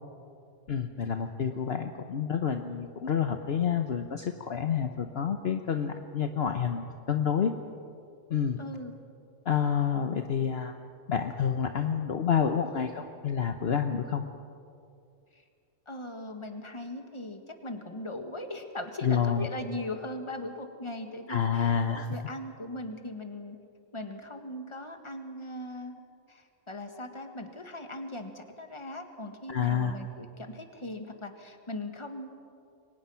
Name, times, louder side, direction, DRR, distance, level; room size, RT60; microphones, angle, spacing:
voice 1, 0.7-7.5 8.3-8.6 9.4-10.8 11.1-14.3 19.0-19.5 21.3-22.1 29.5-30.0, left 7 dB, 55° left, 6 dB, 1.1 m, -28 dB
voice 2, 8.6-8.9 15.3-15.4 15.9-23.6 23.9-26.0 26.3-32.3, left 1 dB, 25° left, 5 dB, 1.8 m, -39 dB
29.0 x 23.0 x 5.8 m, 2.4 s
omnidirectional pair, 1.3 m